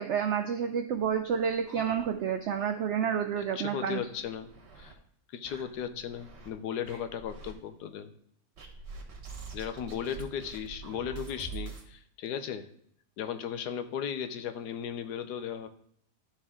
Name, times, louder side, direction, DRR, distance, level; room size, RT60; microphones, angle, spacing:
voice 1, 0.0-4.1, right 7 dB, 85° right, 7 dB, 0.6 m, -29 dB
sound 1, 1.0-2.5 2.9-3.0 3.3-3.4 4.0-4.9 5.4-6.5 6.8-7.5 8.6-11.9, right 5 dB, 45° right, 1.3 m, -45 dB
voice 2, 3.4-5.0 5.3-8.1 9.5-12.7 13.2-15.7, left 8 dB, 80° left, 9 dB, 1.2 m, -36 dB
11.5 x 4.4 x 3.6 m, 0.66 s
omnidirectional pair, 1.8 m